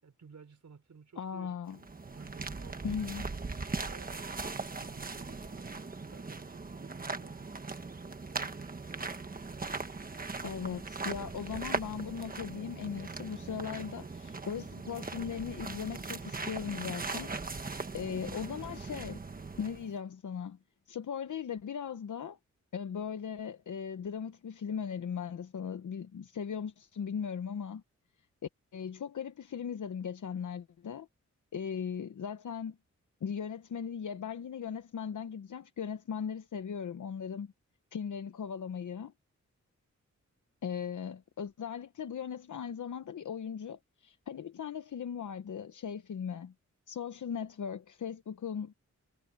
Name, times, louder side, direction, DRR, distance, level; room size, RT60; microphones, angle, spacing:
voice 1, 0.0-1.6 2.1-3.2 3.9-4.1 4.7-7.6 8.3-9.0, right 6 dB, 65° right, 4.9 m, -55 dB
voice 2, 1.2-1.8 2.8-3.3 10.4-17.3 17.6-19.2 19.6-20.6 20.9-22.4 22.7-27.8 28.7-31.1 31.5-32.8 33.2-37.5 37.9-39.1 40.6-46.5 46.9-48.7, left 7 dB, 75° left, 0.9 m, -38 dB
sound 1, 1.7-19.9, right 3 dB, 30° right, 1.3 m, -40 dB
wide cardioid pair, 170°, 30 cm